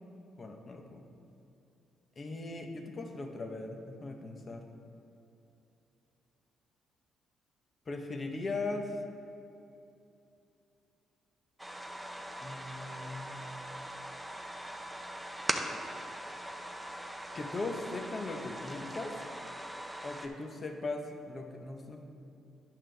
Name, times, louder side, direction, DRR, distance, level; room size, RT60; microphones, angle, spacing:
voice 1, 0.4-1.0 2.2-4.7 7.9-9.0 12.4-13.4 17.3-19.2 20.0-22.0, left 3 dB, 35° left, 3 dB, 0.9 m, -39 dB
sound 1, 11.6-20.3, right 1 dB, 5° right, 0.6 m, -41 dB
10.5 x 5.9 x 3.4 m, 2.7 s
cardioid pair, 90°, 0 cm